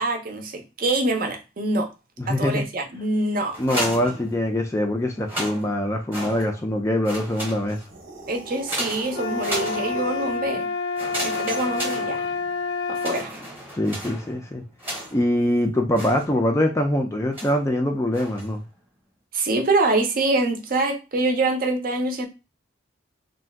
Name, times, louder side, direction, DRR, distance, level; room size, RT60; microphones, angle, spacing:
voice 1, 0.0-1.9 2.3-3.6 8.3-10.7 11.2-12.3 12.9-13.4 19.3-22.3, right 2 dB, 45° right, 0.6 m, -25 dB
voice 2, 2.2-2.6 3.6-7.8 13.7-14.6 15.1-18.6, left 1 dB, 15° left, 0.3 m, -23 dB
sound 1, 3.5-4.7 5.1-6.7 7.0-8.0 8.7-10.2 10.9-12.6 13.0-15.4 15.9-16.7 17.3-17.7 18.1-18.6, right 1 dB, 10° right, 0.8 m, -34 dB
sound 2, 7.8-10.5, right 2 dB, 85° right, 0.8 m, -39 dB
sound 3, 9.1-13.3, left 4 dB, 85° left, 0.5 m, -28 dB
2.5 x 2.2 x 3.4 m
head